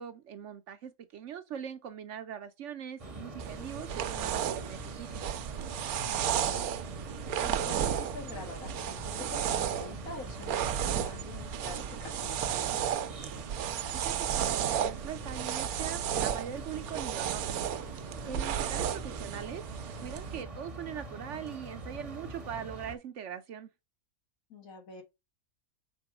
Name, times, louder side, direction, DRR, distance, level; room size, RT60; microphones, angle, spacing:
voice 1, 0.0-5.2 13.9-17.6 18.2-19.6 20.0-23.7, right 9 dB, 65° right, 0.9 m, -41 dB
sound 1, 3.0-23.0, right 2 dB, 30° right, 0.8 m, -44 dB
sound 2, 3.4-20.4, right 9 dB, 85° right, 1.1 m, -33 dB
voice 2, 6.1-6.7 7.0-7.1 7.4-12.8 18.2-18.7 24.5-25.0, left 3 dB, 70° left, 2.0 m, -46 dB
5.4 x 4.2 x 4.8 m
omnidirectional pair, 1.5 m